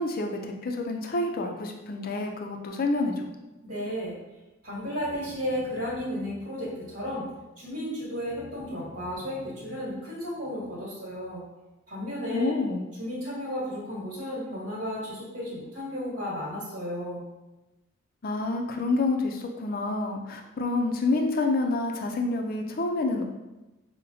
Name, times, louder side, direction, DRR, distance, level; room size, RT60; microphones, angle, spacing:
voice 1, 0.0-3.3 12.3-12.8 18.2-23.3, left 2 dB, 45° left, 3 dB, 0.4 m, -28 dB
voice 2, 3.6-4.2 4.6-7.3 7.6-11.4 11.9-12.6 13.0-17.2, equal, 55° right, -8 dB, 1.4 m, -33 dB
5.4 x 2.1 x 2.7 m, 1.0 s
head